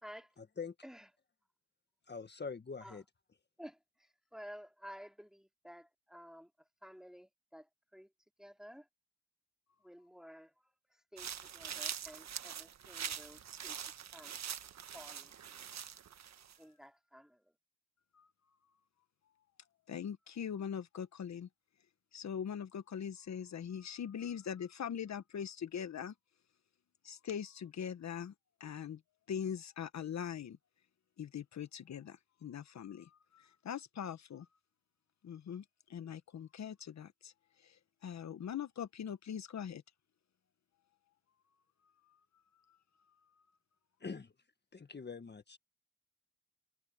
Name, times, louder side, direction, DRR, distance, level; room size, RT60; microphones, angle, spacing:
voice 1, 0.4-0.7 2.0-3.0 44.0-44.5 44.7-45.6, left 5 dB, 35° left, 1.6 m, -44 dB
voice 2, 3.6-6.5 6.8-8.1 8.4-8.9 9.8-10.5 10.9-13.8 14.1-14.4 14.9-15.6 16.6-17.4, equal, ahead, 2.6 m, -53 dB
sound 1, 11.2-16.6, right 8 dB, 60° right, 1.5 m, -44 dB
voice 3, 19.9-21.5 22.1-26.1 27.0-28.3 28.6-29.0 29.3-30.6 31.2-34.5 35.2-37.3 37.6-39.8 42.1-42.2, left 8 dB, 60° left, 1.4 m, -42 dB
supercardioid pair, 60°, 31 cm